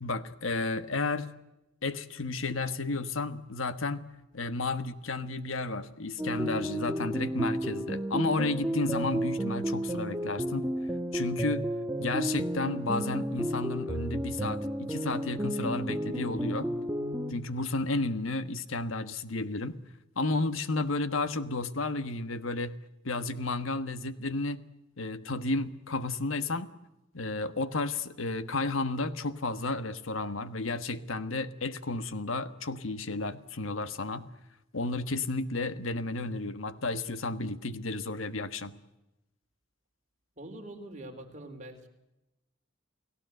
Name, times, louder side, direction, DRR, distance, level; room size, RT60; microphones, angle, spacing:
voice 1, 0.0-1.3 1.8-4.0 4.3-10.6 11.1-11.6 12.0-16.7 17.3-19.8 20.1-22.8 23.0-24.6 25.0-26.7 27.1-34.3 34.7-38.7, left 3 dB, 80° left, 12 dB, 1.4 m, -32 dB
sound 1, 6.2-17.3, right 1 dB, 10° right, 1.3 m, -32 dB
voice 2, 40.4-41.9, right 1 dB, 40° right, 3 dB, 3.7 m, -44 dB
30.0 x 18.0 x 8.0 m, 0.94 s
head